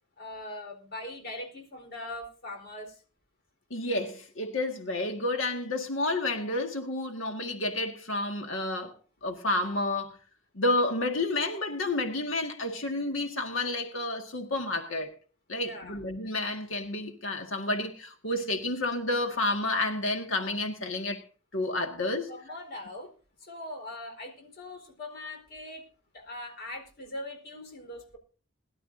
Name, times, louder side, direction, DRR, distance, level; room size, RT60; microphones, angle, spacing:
voice 1, 0.2-3.0 15.6-16.0 22.3-23.1 23.4-25.9 26.1-28.2, left 1 dB, 55° left, 4.2 m, -41 dB
voice 2, 3.7-8.9 9.2-10.1 10.6-15.1 15.5-21.2 21.5-22.6, left 2 dB, 75° left, 1.8 m, -30 dB
21.5 x 12.0 x 2.6 m
head